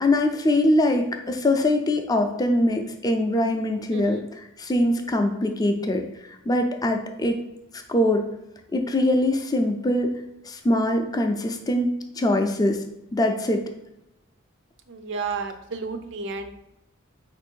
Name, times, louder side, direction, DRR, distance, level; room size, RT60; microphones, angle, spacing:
voice 1, 0.0-6.0 6.5-7.4 7.9-8.3 8.7-10.2 10.5-12.8 13.1-13.6, left 1 dB, 20° left, 5 dB, 0.5 m, -23 dB
voice 2, 14.9-16.5, right 4 dB, 60° right, 8 dB, 0.5 m, -32 dB
4.5 x 2.6 x 4.4 m, 0.88 s
head